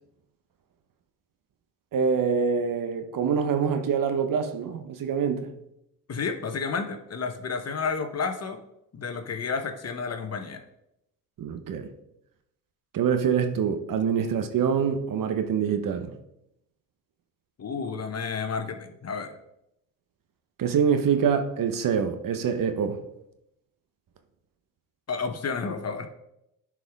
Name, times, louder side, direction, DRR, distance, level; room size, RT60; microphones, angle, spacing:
voice 1, 1.9-5.5 11.4-11.9 12.9-16.1 20.6-23.0, right 7 dB, 55° right, 1.0 m, -25 dB
voice 2, 6.1-8.6 8.9-10.6 17.6-19.4 25.1-26.1, left 5 dB, 40° left, 1.1 m, -31 dB
11.0 x 4.8 x 3.6 m
supercardioid pair, 65°, 40 cm